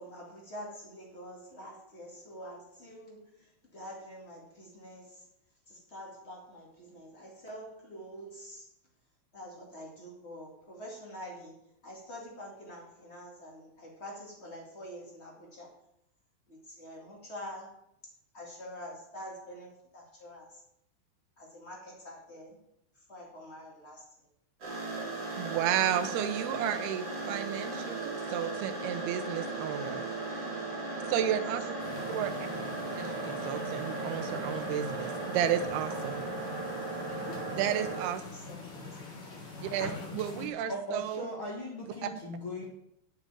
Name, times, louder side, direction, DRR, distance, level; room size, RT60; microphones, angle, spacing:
voice 1, 0.0-5.3 5.7-8.7 9.3-15.8 16.5-17.8 18.0-20.6 21.4-22.6 22.9-24.0 31.1-31.4 31.8-32.0 37.7-38.6, equal, 55° left, -2 dB, 0.7 m, -46 dB
sound 1, 24.6-38.1, right 3 dB, 25° right, 3.0 m, -37 dB
voice 2, 25.3-30.0 31.1-31.8 32.1-32.5 33.0-36.2 37.5-38.2 39.6-41.3, right 10 dB, 75° right, 8 dB, 2.4 m, -32 dB
sound 2, 31.8-40.5, left 3 dB, 35° left, 2.9 m, -43 dB
voice 3, 40.7-42.7, equal, 80° left, -4 dB, 1.1 m, -38 dB
8.1 x 7.9 x 9.0 m, 0.78 s
omnidirectional pair, 5.8 m